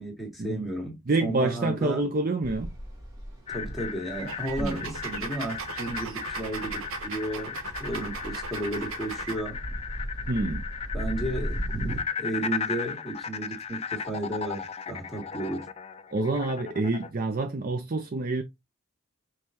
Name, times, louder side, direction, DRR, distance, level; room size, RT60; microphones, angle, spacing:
voice 1, 0.0-2.1 3.5-9.6 10.9-11.6 12.2-15.7, right 1 dB, ahead, 1.6 m, -33 dB
voice 2, 1.1-2.7 4.6-4.8 10.3-10.6 16.1-18.4, right 2 dB, 40° right, 0.5 m, -27 dB
sound 1, 2.4-12.0, equal, 15° right, 1.4 m, -37 dB
sound 2, 3.5-17.1, left 7 dB, 30° left, 0.3 m, -36 dB
sound 3, 4.2-9.4, right 4 dB, 75° right, 0.9 m, -38 dB
5.4 x 3.2 x 2.9 m
head